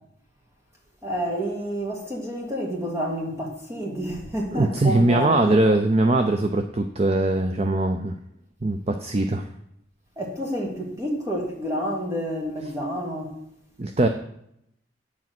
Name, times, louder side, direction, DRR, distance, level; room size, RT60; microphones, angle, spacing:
voice 1, 1.0-5.7 10.2-13.3, equal, 15° right, 2.1 m, -29 dB
voice 2, 4.5-8.1 8.6-9.5 13.8-14.1, right 2 dB, 30° right, 0.5 m, -21 dB
8.4 x 7.4 x 6.0 m
head